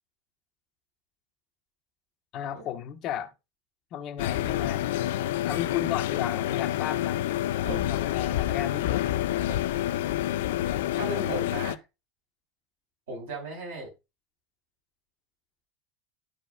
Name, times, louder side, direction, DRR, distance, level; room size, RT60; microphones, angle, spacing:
voice 1, 2.3-3.3 3.9-4.9 5.4-7.3 7.7-8.9, left 10 dB, 40° left, 0.8 m, -34 dB
sound 1, 4.2-11.8, left 13 dB, 60° left, 0.4 m, -28 dB
voice 2, 10.9-11.8 13.1-13.9, right 1 dB, 65° right, 4.0 m, -35 dB
12.5 x 4.5 x 2.3 m
figure-of-eight pair, 75°, 0 cm